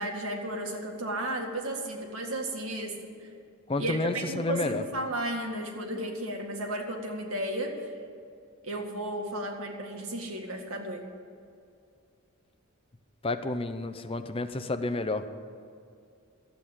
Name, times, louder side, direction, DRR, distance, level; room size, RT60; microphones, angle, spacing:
voice 1, 0.0-2.9 3.8-7.7 8.6-11.0, right 1 dB, 75° right, 2 dB, 2.0 m, -33 dB
voice 2, 3.7-4.8 13.2-15.3, left 2 dB, 25° left, 9 dB, 0.6 m, -30 dB
13.0 x 8.6 x 8.8 m, 2.3 s
head